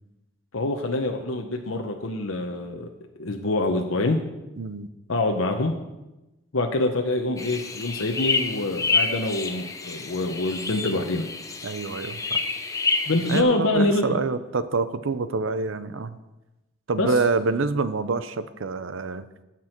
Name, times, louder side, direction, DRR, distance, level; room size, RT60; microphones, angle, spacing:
voice 1, 0.5-2.9 3.2-4.2 5.1-5.7 6.5-11.3 13.1-14.1 17.0-17.1, left 2 dB, 75° left, 3 dB, 0.8 m, -25 dB
voice 2, 4.6-4.9 11.6-12.4 13.3-16.2 16.9-19.3, right 3 dB, 70° right, 13 dB, 0.6 m, -26 dB
sound 1, 7.4-13.4, left 4 dB, 15° left, 0.6 m, -28 dB
15.5 x 6.1 x 4.5 m, 1.0 s
head